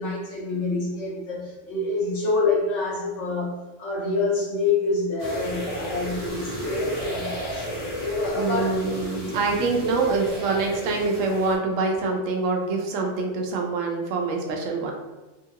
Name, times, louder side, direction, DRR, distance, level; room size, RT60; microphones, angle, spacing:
voice 1, 0.0-8.7, left 3 dB, 65° left, -4 dB, 1.2 m, -27 dB
sound 1, 5.2-11.6, equal, 55° right, 1.2 m, -33 dB
voice 2, 8.3-14.9, right 3 dB, 80° right, 1 dB, 0.9 m, -25 dB
2.8 x 2.4 x 2.8 m, 1.1 s
omnidirectional pair, 1.3 m